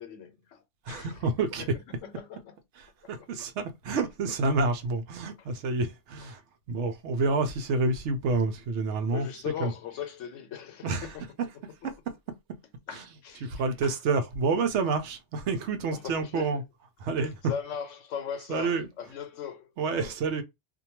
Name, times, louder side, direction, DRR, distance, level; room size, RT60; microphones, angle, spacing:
voice 1, 0.0-1.3 1.6-2.6 3.9-4.0 5.4-5.5 6.3-6.4 9.1-11.2 12.9-13.5 13.8-14.0 15.9-16.6 17.5-20.1, left 8 dB, 85° left, 1.0 m, -39 dB
voice 2, 0.8-1.7 3.1-6.4 6.7-9.3 9.6-9.7 10.8-11.1 11.8-11.9 12.9-13.0 13.4-16.6 17.0-17.4 18.5-18.9 19.8-20.4, right 3 dB, 70° right, 0.9 m, -28 dB
2.6 x 2.2 x 2.8 m
omnidirectional pair, 1.3 m